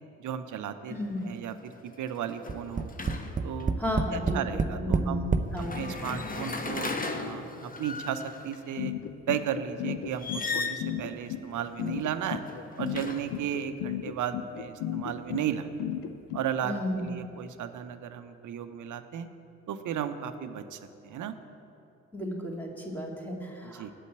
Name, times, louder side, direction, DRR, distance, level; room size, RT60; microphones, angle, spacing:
voice 1, 0.2-2.9 3.4-3.7 4.1-5.2 5.7-6.9 7.2-8.9 9.3-12.4 12.8-15.7 16.3-19.3 19.7-21.3 23.6-23.9, right 9 dB, 50° right, 10 dB, 0.9 m, -34 dB
sound 1, 0.9-1.2 1.5-3.7 5.5-8.6 10.1-10.9 12.1-13.5, left 3 dB, 20° left, 1.1 m, -36 dB
voice 2, 0.9-1.2 3.8-5.8 16.6-17.1 22.1-23.9, left 1 dB, 5° left, -2 dB, 2.6 m, -33 dB
Tap, 2.5-5.5 6.3-6.4 6.7-6.8, right 4 dB, 20° right, 0.6 m, -28 dB
sound 2, 8.8-16.4, left 12 dB, 55° left, 0.7 m, -34 dB
8.2 x 7.9 x 8.1 m, 2.9 s
figure-of-eight pair, 45°, 39 cm